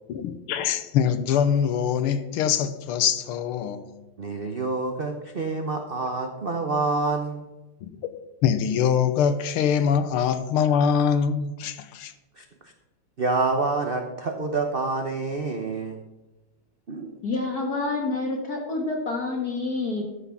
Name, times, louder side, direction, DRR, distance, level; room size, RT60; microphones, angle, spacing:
voice 1, 0.1-3.9 7.8-7.9 8.4-12.1, left 7 dB, 90° left, 1.7 m, -23 dB
voice 2, 4.2-7.4 12.4-12.5 13.2-16.0 16.9-17.1, right 3 dB, 65° right, 0.5 m, -27 dB
voice 3, 17.2-20.0, left 3 dB, 45° left, 1.9 m, -28 dB
13.5 x 6.1 x 5.7 m
omnidirectional pair, 2.3 m